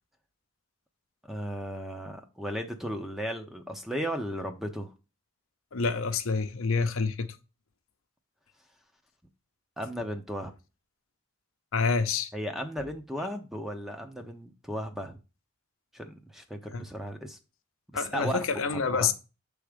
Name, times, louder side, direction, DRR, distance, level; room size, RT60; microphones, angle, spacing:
voice 1, 1.3-4.9 9.8-10.5 12.3-15.2 15.9-17.4 17.9-18.4 18.7-19.1, equal, ahead, 0.7 m, -35 dB
voice 2, 5.7-7.3 11.7-12.3 16.7-16.8 17.9-19.1, left 5 dB, 75° left, 0.7 m, -27 dB
7.1 x 3.5 x 5.1 m
head